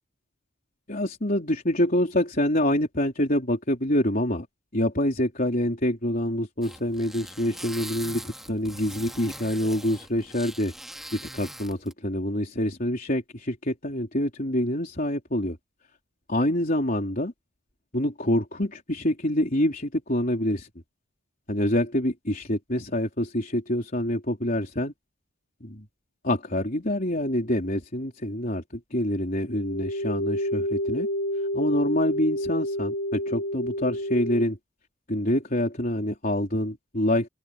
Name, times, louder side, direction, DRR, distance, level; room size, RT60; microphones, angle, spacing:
voice 1, 0.9-4.5 4.7-10.7 11.1-15.6 16.3-17.3 17.9-20.7 21.5-24.9 25.6-25.9 26.2-31.1 31.5-34.6 35.1-37.3, left 1 dB, 40° left, 4.0 m, -26 dB
sound 1, 6.6-11.9, equal, ahead, 2.4 m, -41 dB
sound 2, 29.5-34.4, equal, 70° left, 1.1 m, -29 dB
open air
head